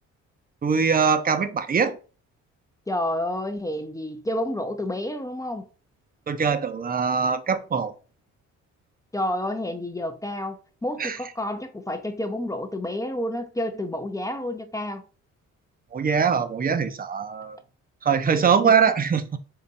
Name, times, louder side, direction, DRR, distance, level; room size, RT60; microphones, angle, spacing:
voice 1, 0.6-2.0 6.3-7.9 11.0-11.2 15.9-17.6 18.0-19.4, right 6 dB, 30° right, 0.6 m, -22 dB
voice 2, 2.9-5.6 9.1-15.0 18.4-18.7, left 1 dB, 10° left, 0.5 m, -30 dB
3.7 x 2.6 x 4.0 m
cardioid pair, 90°, 30 cm